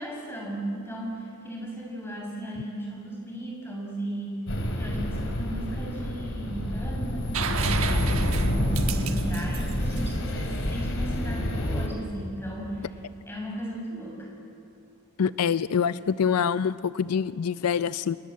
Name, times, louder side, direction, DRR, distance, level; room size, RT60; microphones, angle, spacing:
voice 1, 0.0-4.4 4.7-12.9 13.3-14.3, right 1 dB, 10° left, -2 dB, 6.3 m, -36 dB
sound 1, 4.5-11.9, equal, 60° left, 2.8 m, -28 dB
sound 2, 7.3-11.0 12.9-13.0, right 6 dB, 65° right, 1.3 m, -33 dB
voice 2, 15.2-18.2, left 7 dB, 90° left, 16 dB, 0.5 m, -25 dB
29.0 x 19.5 x 7.4 m, 2.6 s
head